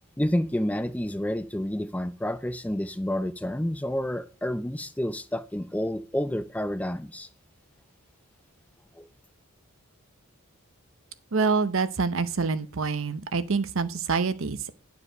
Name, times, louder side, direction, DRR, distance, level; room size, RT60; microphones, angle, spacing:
voice 1, 0.2-7.3 8.9-9.1, left 1 dB, 5° left, 0.4 m, -29 dB
voice 2, 11.3-14.8, right 4 dB, 65° right, 0.7 m, -26 dB
10.0 x 4.9 x 6.4 m
head